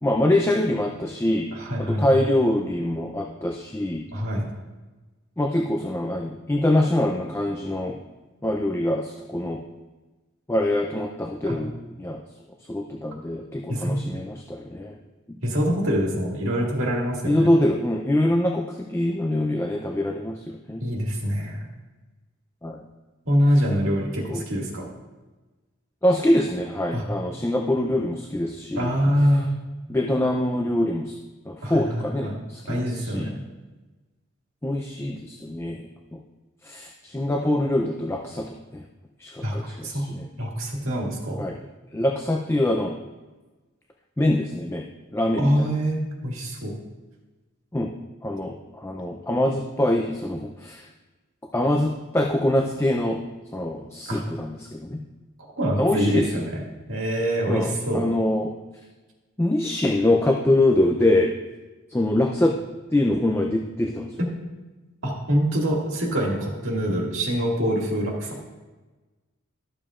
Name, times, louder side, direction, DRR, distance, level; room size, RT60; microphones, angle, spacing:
voice 1, 0.0-1.5 1.8-4.0 5.4-8.0 8.4-9.6 10.5-11.7 12.0-12.2 12.7-15.0 17.2-20.8 22.6-22.8 24.3-24.4 26.0-28.9 29.9-31.2 31.5-33.3 34.6-35.8 36.1-36.2 36.6-38.8 39.2-40.3 41.4-41.6 41.9-42.9 44.2-44.8 45.1-45.7 47.7-47.9 48.2-50.8 51.5-53.2 53.5-55.0 55.8-56.3 57.5-58.5 59.4-61.3 61.9-62.6 62.9-64.1, left 1 dB, 10° left, 2 dB, 0.5 m, -24 dB
voice 2, 1.5-2.0 4.1-4.4 11.4-11.6 13.7-14.0 15.4-17.5 20.8-21.7 23.3-24.9 26.9-27.0 28.8-29.5 31.6-32.4 32.7-33.4 39.4-39.6 39.8-40.1 40.4-41.4 45.4-46.7 54.1-54.2 55.6-56.6 56.9-58.1 64.2-64.3 65.0-68.4, equal, 65° right, -2 dB, 2.1 m, -24 dB
13.5 x 7.0 x 2.5 m, 1.2 s
head